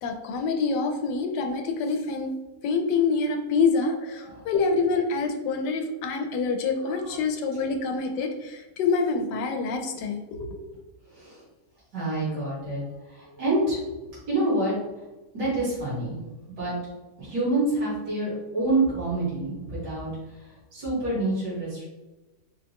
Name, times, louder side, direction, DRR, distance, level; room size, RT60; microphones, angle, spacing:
voice 1, 0.0-2.3 2.6-10.6, left 4 dB, 90° left, 4 dB, 1.2 m, -26 dB
voice 2, 4.2-4.5 6.8-7.2 11.0-11.4 11.9-13.9 14.3-14.7 15.3-16.2 16.5-16.7 17.2-21.8, right 2 dB, 75° right, -10 dB, 2.3 m, -28 dB
4.9 x 2.2 x 2.8 m, 1.1 s
omnidirectional pair, 1.8 m